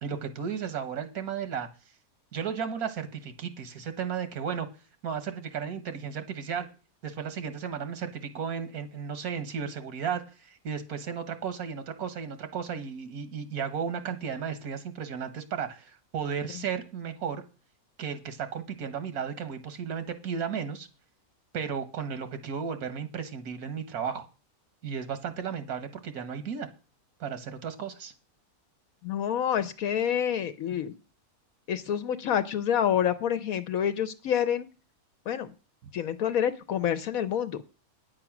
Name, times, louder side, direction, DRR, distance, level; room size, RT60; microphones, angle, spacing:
voice 1, 0.0-1.7 2.3-4.7 5.0-6.7 7.0-17.4 18.0-20.9 21.5-24.3 24.8-26.7 27.2-28.1, right 7 dB, 85° right, 10 dB, 1.6 m, -34 dB
voice 2, 29.0-30.9 31.7-34.7 35.3-35.5 35.9-37.6, left 9 dB, 75° left, 10 dB, 1.1 m, -27 dB
9.3 x 7.5 x 5.9 m, 0.34 s
omnidirectional pair, 1.5 m